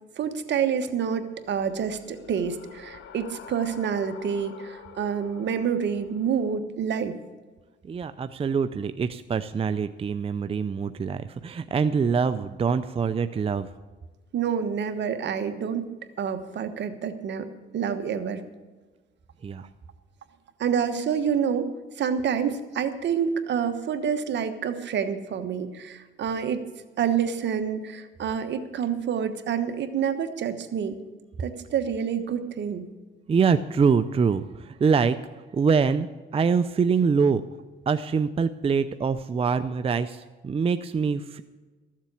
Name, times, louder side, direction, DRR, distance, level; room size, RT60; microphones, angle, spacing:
voice 1, 0.2-7.2 14.3-15.9 16.2-17.5 17.7-18.4 20.6-26.6 27.0-31.0 31.4-32.9, right 7 dB, 65° right, 8 dB, 1.3 m, -28 dB
sound 1, 1.4-6.6, left 7 dB, 80° left, 1.4 m, -47 dB
voice 2, 7.8-13.7 19.4-19.7 33.3-37.4 37.9-41.4, right 5 dB, 30° right, 11 dB, 0.5 m, -24 dB
14.0 x 7.4 x 8.3 m, 1.3 s
cardioid pair, 90°, 20 cm